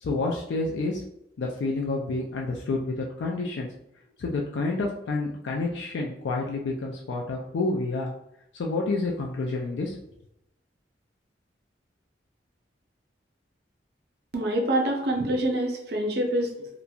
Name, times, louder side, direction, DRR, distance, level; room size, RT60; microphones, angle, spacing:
voice 1, 0.0-1.0 1.4-3.7 4.2-8.1 8.5-10.0, left 3 dB, 75° left, -1 dB, 0.4 m, -29 dB
voice 2, 14.3-16.7, right 1 dB, 60° right, 2 dB, 0.5 m, -26 dB
2.9 x 2.4 x 2.2 m, 0.80 s
head